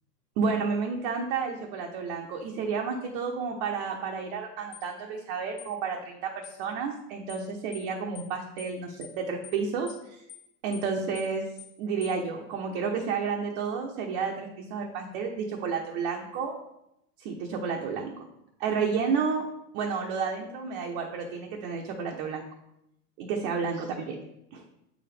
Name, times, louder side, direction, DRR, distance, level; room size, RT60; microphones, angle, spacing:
voice 1, 0.4-10.2 10.6-11.4 11.8-16.5 17.2-18.2 18.6-19.4 19.7-22.4 23.2-24.1 24.5-24.6, right 5 dB, 45° right, 1 dB, 1.0 m, -31 dB
sound 1, 4.7-4.9 5.6-5.7 6.4-6.6 7.3-7.5 7.7-7.9 8.1-8.3 8.6-8.7 9.0-9.2 9.4-9.6 9.9-10.0 10.3-10.5 10.7-10.9 11.1-11.3 11.6-11.7 12.0-12.2, left 12 dB, 35° left, 0.6 m, -46 dB
8.2 x 5.0 x 3.4 m, 0.83 s
supercardioid pair, 140°, 48 cm